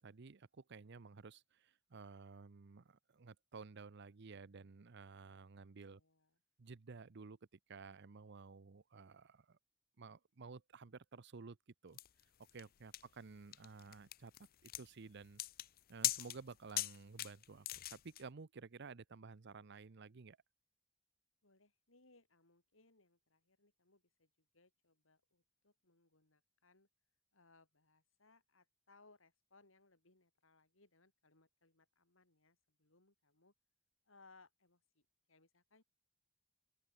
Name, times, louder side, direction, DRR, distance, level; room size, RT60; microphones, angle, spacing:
voice 1, 0.0-6.0 6.6-7.4 7.7-9.6 10.0-11.6 11.8-12.0 12.5-14.3 14.6-15.4 15.9-20.4, right 4 dB, 60° right, 0.7 m, -54 dB
voice 2, 5.9-6.4 21.4-26.9 27.3-33.5 34.1-35.8, left 3 dB, 75° left, 5.2 m, -69 dB
sound 1, 12.0-18.2, left 15 dB, 45° left, 0.5 m, -42 dB
open air
head